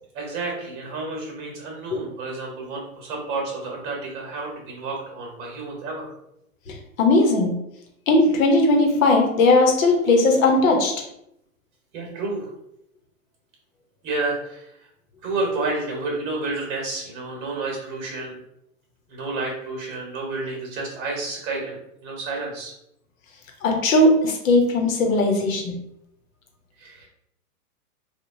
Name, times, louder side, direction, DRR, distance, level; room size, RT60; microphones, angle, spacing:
voice 1, 0.1-6.1 11.9-12.5 14.0-14.7 15.2-18.3 19.1-22.7 26.8-27.1, right 3 dB, 35° right, 0 dB, 1.2 m, -30 dB
voice 2, 6.7-7.5 8.1-10.9 23.6-25.7, left 2 dB, 65° left, 2 dB, 0.9 m, -18 dB
3.0 x 2.3 x 2.6 m, 0.78 s
hypercardioid pair, 140°, 43 cm